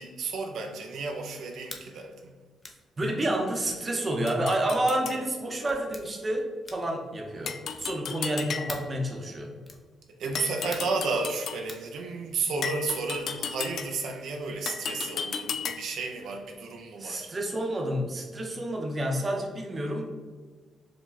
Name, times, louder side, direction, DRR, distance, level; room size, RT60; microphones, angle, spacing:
voice 1, 0.0-2.3 10.2-17.3, right 4 dB, 80° right, 2 dB, 0.5 m, -32 dB
sound 1, 1.6-1.9 2.6-2.8 3.6-3.8 4.7-4.9 5.7-6.1 6.6-7.0 7.7-8.0 8.7-9.0 9.6-9.9 10.7-11.0 11.7-11.9, left 2 dB, 30° left, 0.6 m, -43 dB
voice 2, 3.0-9.5 17.0-20.0, right 1 dB, 30° right, 1 dB, 0.7 m, -29 dB
sound 2, 4.3-5.2 7.5-9.0 10.4-11.7 12.6-14.1 14.7-16.0, left 6 dB, 65° left, 0.3 m, -35 dB
4.7 x 2.2 x 3.9 m, 1.4 s
cardioid pair, 100°, 0 cm